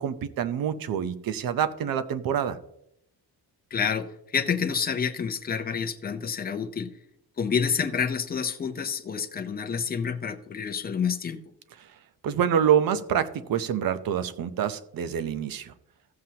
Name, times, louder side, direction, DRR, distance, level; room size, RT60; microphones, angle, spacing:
voice 1, 0.0-2.6 12.2-15.7, right 9 dB, 60° right, 12 dB, 0.7 m, -26 dB
voice 2, 3.7-6.9 7.4-11.4, left 6 dB, 25° left, 6 dB, 0.7 m, -28 dB
15.0 x 7.6 x 2.8 m, 0.78 s
cardioid pair, 170°, 39 cm